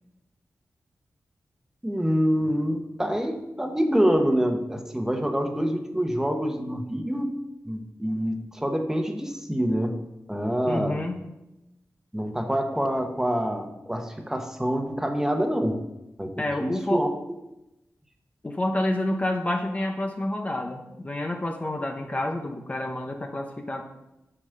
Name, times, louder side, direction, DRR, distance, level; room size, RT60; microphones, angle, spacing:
voice 1, 1.8-7.3 7.7-10.0 10.3-11.0 12.1-15.7 16.2-16.3 16.6-17.1, equal, 10° right, 4 dB, 1.3 m, -26 dB
voice 2, 10.7-11.2 16.4-17.0 18.4-23.8, left 1 dB, 25° left, 3 dB, 0.9 m, -29 dB
10.0 x 5.3 x 6.6 m, 0.94 s
wide cardioid pair, 110°, 6 cm